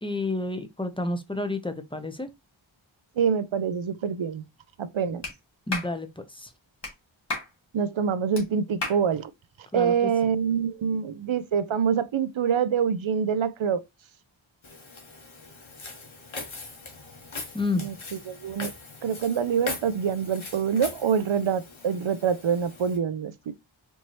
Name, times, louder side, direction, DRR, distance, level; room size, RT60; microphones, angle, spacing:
voice 1, 0.0-2.3 5.1-5.2 5.7-6.5 9.7-10.1 17.5-17.9, left 2 dB, 10° left, 0.6 m, -30 dB
voice 2, 3.2-4.4 4.8-5.2 7.7-9.3 9.7-13.8 17.8-18.7 19.0-23.5, right 7 dB, 75° right, 0.5 m, -26 dB
Clapping, 5.2-5.3 5.7-5.9 6.8-6.9 7.3-7.5 8.3-8.4 8.8-9.0, left 2 dB, 60° left, 1.5 m, -32 dB
Walk footsteps, 14.6-23.0, left 3 dB, 80° left, 1.1 m, -41 dB
4.5 x 2.7 x 3.0 m
wide cardioid pair, 45°, 48 cm